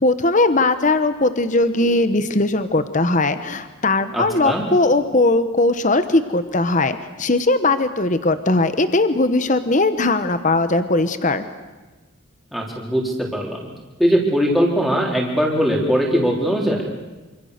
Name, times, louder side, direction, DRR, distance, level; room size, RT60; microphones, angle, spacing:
voice 1, 0.0-11.4, left 2 dB, 35° left, 11 dB, 1.1 m, -19 dB
voice 2, 4.1-4.6 12.5-13.7 14.0-16.9, equal, ahead, -1 dB, 3.9 m, -20 dB
27.0 x 26.0 x 6.7 m, 1.2 s
head